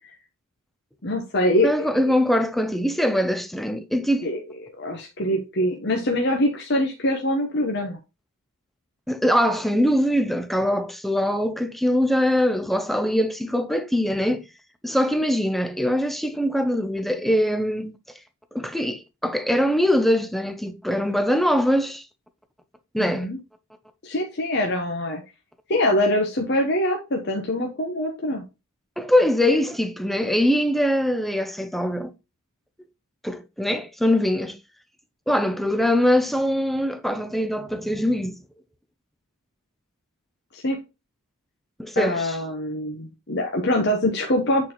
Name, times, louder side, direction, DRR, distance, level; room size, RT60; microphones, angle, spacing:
voice 1, 1.0-1.9 4.2-4.4 4.8-8.0 23.0-23.4 24.0-25.2 25.7-28.4 40.5-40.8 42.0-44.7, left 1 dB, 50° left, 1.0 m, -24 dB
voice 2, 1.6-4.3 9.1-14.4 14.8-18.0 18.5-22.0 22.9-23.3 29.0-32.1 33.2-34.6 35.3-38.4 41.8-42.4, equal, ahead, 0.5 m, -22 dB
8.4 x 4.2 x 3.0 m
head